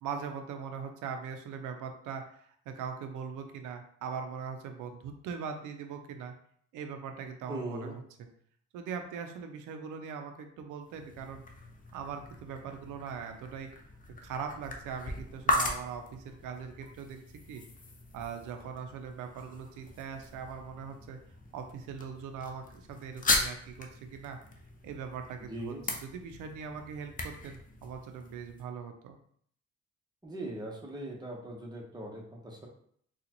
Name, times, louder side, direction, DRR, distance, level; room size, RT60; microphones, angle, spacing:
voice 1, 0.0-2.4 2.7-6.3 6.7-7.9 8.7-11.4 11.9-13.7 14.2-17.2 17.5-17.6 18.1-21.2 21.5-24.4 24.8-29.2, right 6 dB, 90° right, 6 dB, 0.5 m, -41 dB
voice 2, 7.5-7.9 25.4-25.8 30.2-32.7, right 1 dB, 15° right, -2 dB, 1.0 m, -40 dB
sound 1, 10.8-28.6, left 2 dB, 25° left, 0.6 m, -38 dB
3.8 x 2.4 x 2.9 m, 0.63 s
cardioid pair, 90°, 30 cm